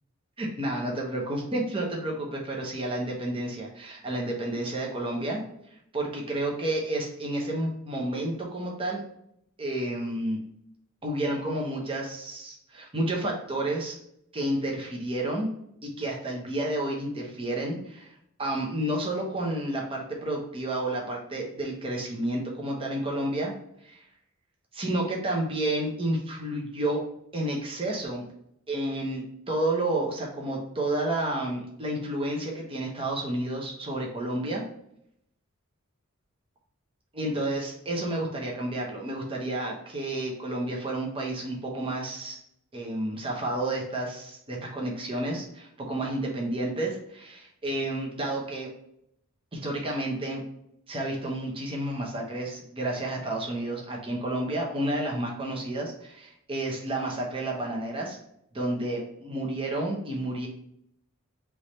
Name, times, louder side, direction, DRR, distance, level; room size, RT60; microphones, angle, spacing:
voice 1, 0.4-5.4 5.9-9.0 9.6-10.4 11.0-14.0 14.3-15.5 15.8-18.1 18.4-23.5 23.8-24.0 24.7-27.0 27.3-28.2 28.7-34.6 37.1-42.4 42.7-48.7 49.5-50.4 50.9-58.2 58.5-60.5, right 1 dB, 25° right, -1 dB, 0.8 m, -30 dB
3.5 x 3.1 x 4.2 m, 0.73 s
head